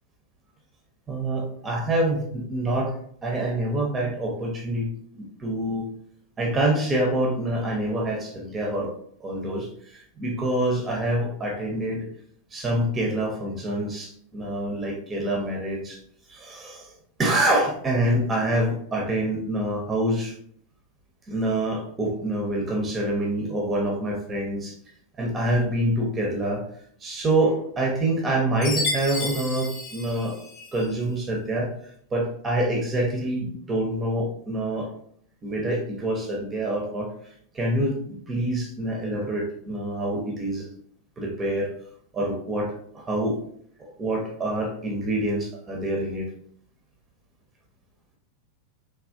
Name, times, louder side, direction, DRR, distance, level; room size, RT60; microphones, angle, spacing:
voice 1, 1.1-2.9 3.2-4.9 5.1-5.9 6.4-8.9 9.2-12.1 12.5-16.0 16.3-16.9 17.2-20.3 21.3-24.7 25.2-26.6 27.0-30.4 30.7-31.7 32.1-34.9 35.4-37.1 37.5-40.7 41.2-41.7 42.1-43.4 43.8-46.3, right 1 dB, 20° right, 0 dB, 0.7 m, -26 dB
Chime, 28.6-30.9, left 2 dB, 30° left, 0.7 m, -31 dB
3.3 x 2.4 x 2.4 m, 0.64 s
figure-of-eight pair, 90°, 0 cm